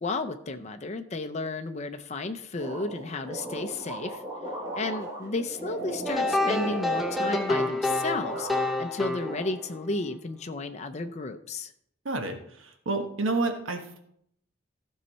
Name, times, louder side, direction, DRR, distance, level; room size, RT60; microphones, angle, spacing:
voice 1, 0.0-4.2 4.7-8.5 8.8-11.7, left 3 dB, 35° left, 7 dB, 0.5 m, -33 dB
sound 1, 2.6-7.9 8.2-8.9 9.2-10.1, right 1 dB, 15° right, 3.5 m, -37 dB
sound 2, 6.1-9.9, left 2 dB, ahead, 0.7 m, -28 dB
voice 2, 12.0-14.0, right 3 dB, 80° right, 5 dB, 1.3 m, -30 dB
15.0 x 5.5 x 4.1 m, 0.71 s
head